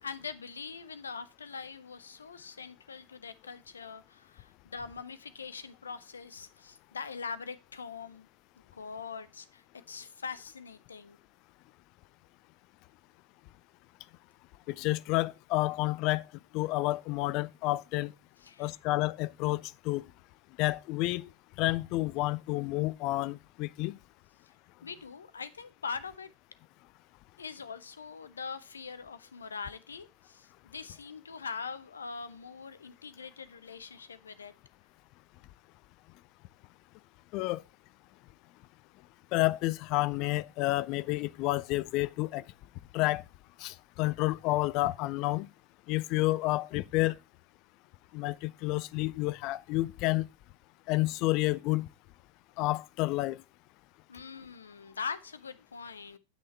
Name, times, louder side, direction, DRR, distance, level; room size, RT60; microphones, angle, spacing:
voice 1, 0.0-8.3 8.7-11.2 18.4-18.8 24.8-26.3 27.4-34.5 54.1-56.2, left 5 dB, 70° left, 1.1 m, -42 dB
voice 2, 14.7-16.2 16.5-18.1 18.6-20.1 20.6-21.3 21.6-24.0 37.3-37.6 39.3-42.4 42.9-43.2 43.6-45.5 45.9-47.2 48.1-50.3 50.9-51.9 52.6-53.4, left 19 dB, 40° left, 0.5 m, -30 dB
10.5 x 6.4 x 4.4 m
figure-of-eight pair, 90°, 0 cm